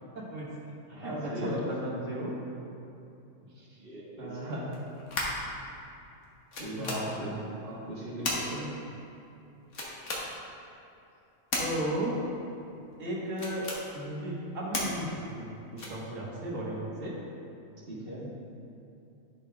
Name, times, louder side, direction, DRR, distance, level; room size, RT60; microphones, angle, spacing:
voice 1, 0.2-0.5 0.9-2.3 3.6-3.8 4.2-4.8 6.8-7.4 11.6-12.2 13.0-13.7 13.9-17.2, right 1 dB, 85° right, -5 dB, 1.9 m, -35 dB
voice 2, 0.9-1.6 3.8-4.5 6.6-7.3 7.6-8.7 17.9-18.3, right 1 dB, 45° right, -6 dB, 1.8 m, -38 dB
sound 1, 4.7-5.5 6.2-6.3 6.5-7.0 8.2-8.4 9.7-10.2 11.5-11.7 13.3-13.8 14.7-14.9 15.8-16.1, left 2 dB, 75° left, 1.6 m, -33 dB
11.5 x 5.1 x 3.5 m, 2.7 s
omnidirectional pair, 1.3 m